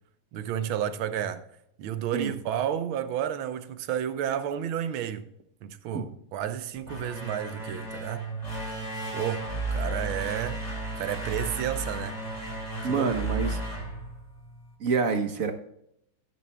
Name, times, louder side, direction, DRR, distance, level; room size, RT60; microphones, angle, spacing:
voice 1, 0.3-1.4 1.8-5.3 5.6-8.2 9.1-10.6 10.9-12.2 12.9-13.1, right 9 dB, 90° right, 1.6 m, -31 dB
sound 1, 6.7-14.7, right 2 dB, 20° left, 2.5 m, -34 dB
voice 2, 12.8-13.6 14.8-15.5, right 5 dB, 50° right, 1.2 m, -27 dB
13.5 x 9.7 x 2.2 m
omnidirectional pair, 2.2 m